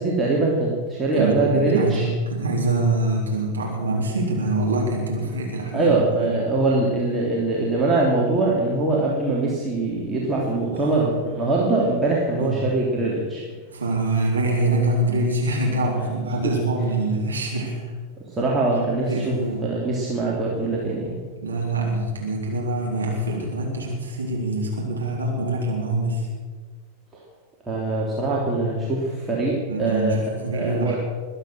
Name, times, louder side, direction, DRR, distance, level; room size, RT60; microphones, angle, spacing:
voice 1, 0.0-2.1 5.7-13.4 16.4-16.5 18.3-21.2 27.7-31.0, right 2 dB, 15° right, -4 dB, 3.1 m, -23 dB
voice 2, 1.1-6.4 10.7-11.0 12.4-12.5 13.7-17.8 19.1-19.6 21.4-26.3 29.7-31.0, right 2 dB, 75° right, -2 dB, 3.8 m, -25 dB
22.0 x 9.0 x 6.3 m, 1.5 s
figure-of-eight pair, 90°, 0 cm